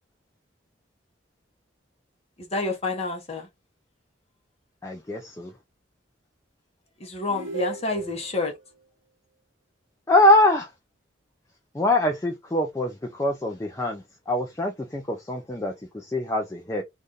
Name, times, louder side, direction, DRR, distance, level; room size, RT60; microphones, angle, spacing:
voice 1, 2.4-3.5 7.0-8.5, left 3 dB, 35° left, 1.0 m, -28 dB
voice 2, 4.8-5.5 10.1-10.7 11.7-16.8, left 1 dB, 15° left, 0.4 m, -23 dB
sound 1, 7.3-8.3, right 3 dB, 90° right, 1.2 m, -35 dB
2.6 x 2.5 x 3.5 m
head